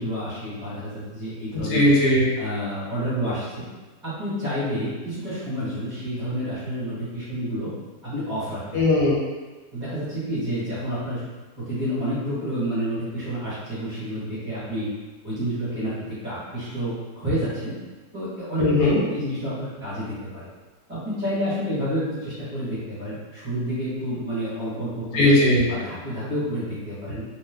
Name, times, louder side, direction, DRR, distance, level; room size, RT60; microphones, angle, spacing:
voice 1, 0.0-1.8 2.4-3.6 4.0-7.7 8.0-8.6 9.7-11.2 11.6-14.9 15.2-17.7 18.1-18.7 18.9-20.5 20.9-25.3 25.7-27.2, equal, 30° right, -11 dB, 1.1 m, -29 dB
voice 2, 1.5-2.2 8.7-9.2 18.6-19.0 25.1-25.6, left 1 dB, 75° left, -5 dB, 1.3 m, -18 dB
2.9 x 2.1 x 3.6 m, 1.2 s
omnidirectional pair, 1.8 m